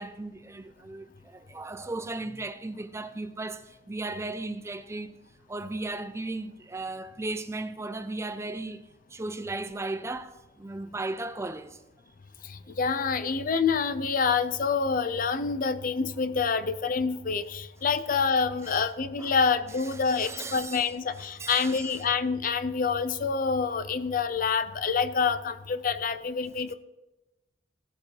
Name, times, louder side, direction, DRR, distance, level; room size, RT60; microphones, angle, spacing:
voice 1, 0.0-5.1 5.5-11.8 18.7-18.8 19.2-19.3 20.1-20.9 21.2-22.0, right 2 dB, 15° right, 0.5 m, -36 dB
voice 2, 12.4-26.7, left 5 dB, 50° left, 0.5 m, -27 dB
16.5 x 8.3 x 3.2 m
head